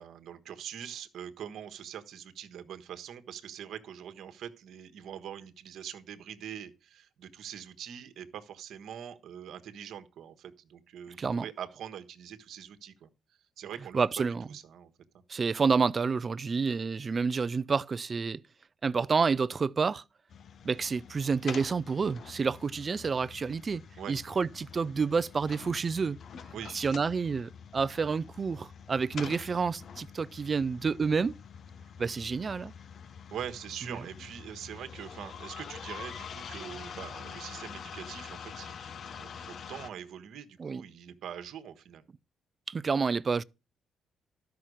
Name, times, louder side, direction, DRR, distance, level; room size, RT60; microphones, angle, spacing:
voice 1, 0.0-13.1 13.6-14.9 24.0-24.2 26.5-26.8 33.3-42.0, right 9 dB, 70° right, 1.3 m, -43 dB
voice 2, 13.9-14.5 15.3-18.4 18.8-20.0 20.6-23.8 24.1-26.2 26.7-31.3 32.0-32.7 33.9-34.0 40.6-40.8 42.7-43.4, right 5 dB, 35° right, 0.5 m, -29 dB
sound 1, 20.3-39.9, left 7 dB, 55° left, 0.9 m, -46 dB
12.5 x 5.8 x 6.3 m
cardioid pair, 90°, 0 cm